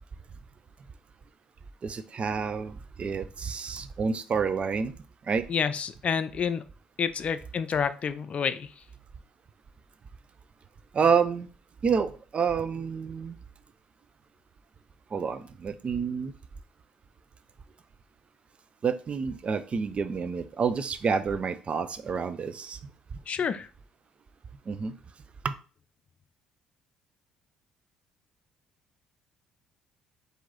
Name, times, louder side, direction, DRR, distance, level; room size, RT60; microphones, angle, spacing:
voice 1, 1.8-4.9 5.3-5.4 10.9-11.5 11.8-13.4 15.1-16.3 18.8-22.8 24.7-24.9 25.4-25.5, right 6 dB, 40° right, 12 dB, 0.5 m, -28 dB
voice 2, 5.5-6.6 7.0-8.7 23.3-23.7, left 6 dB, 45° left, 12 dB, 0.4 m, -28 dB
4.5 x 2.8 x 3.9 m, 0.37 s
hypercardioid pair, 55°, 3 cm